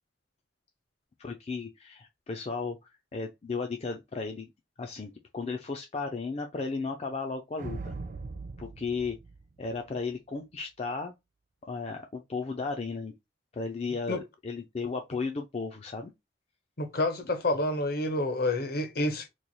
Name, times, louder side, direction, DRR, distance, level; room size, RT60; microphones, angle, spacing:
voice 1, 1.2-2.8 3.1-4.5 4.8-8.0 8.6-9.2 9.6-11.1 11.6-13.1 13.5-16.1, left 4 dB, 35° left, 0.4 m, -35 dB
sound 1, 7.6-10.1, right 3 dB, 45° right, 0.4 m, -40 dB
voice 2, 16.8-19.3, left 2 dB, 55° left, 0.8 m, -28 dB
3.1 x 2.2 x 4.0 m
head